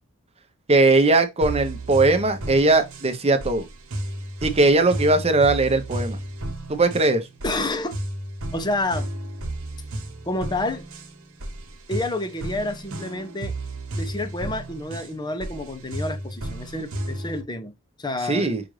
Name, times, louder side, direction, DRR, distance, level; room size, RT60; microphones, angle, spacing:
voice 1, 0.7-3.6 4.4-6.2 6.7-7.3 18.3-18.6, right 2 dB, 30° right, 0.9 m, -19 dB
sound 1, 1.4-17.4, right 1 dB, 70° right, 1.1 m, -33 dB
voice 2, 7.4-7.9 8.5-9.1 10.3-10.8 11.9-13.5 13.9-18.6, left 2 dB, 20° left, 0.7 m, -29 dB
5.9 x 2.5 x 3.1 m
head